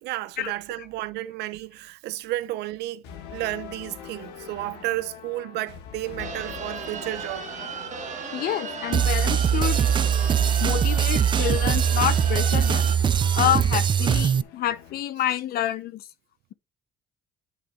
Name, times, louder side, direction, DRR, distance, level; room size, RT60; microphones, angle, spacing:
voice 1, 0.0-3.0 3.3-7.5, right 16 dB, 80° right, 0.7 m, -32 dB
sound 1, 3.0-15.0, left 8 dB, 90° left, 1.6 m, -42 dB
sound 2, 6.2-12.9, right 7 dB, 45° right, 1.4 m, -36 dB
voice 2, 8.3-9.8 10.6-12.9 13.3-16.1, left 12 dB, 65° left, 0.8 m, -28 dB
sound 3, 8.9-14.4, right 8 dB, 30° right, 0.4 m, -21 dB
10.5 x 4.1 x 3.6 m
cardioid pair, 110°, 17 cm